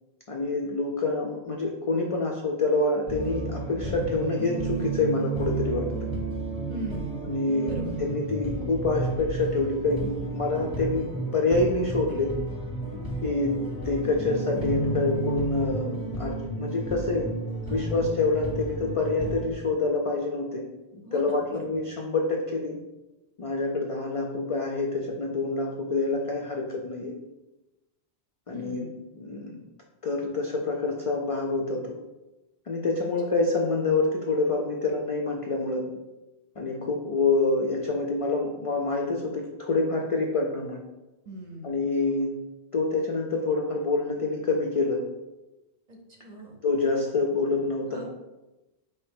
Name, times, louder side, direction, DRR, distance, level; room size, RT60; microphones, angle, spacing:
voice 1, 0.3-5.9 7.3-12.3 13.2-13.6 13.8-17.3 17.7-20.7 20.9-22.8 23.4-27.1 28.5-28.9 29.2-29.6 30.0-32.0 32.7-35.9 36.6-40.8 41.6-42.4 42.7-45.0 46.6-48.1, left 3 dB, 60° left, 0 dB, 0.3 m, -27 dB
sound 1, 3.1-19.5, right 3 dB, 25° left, 0.6 m, -32 dB
voice 2, 6.7-7.2 7.7-7.9 13.4-13.7 17.6-18.1 21.0-21.8 28.5-29.0 41.3-41.8 45.9-46.6 47.9-48.1, right 1 dB, 45° right, 0 dB, 0.7 m, -40 dB
4.7 x 2.8 x 3.5 m, 1.0 s
omnidirectional pair, 1.1 m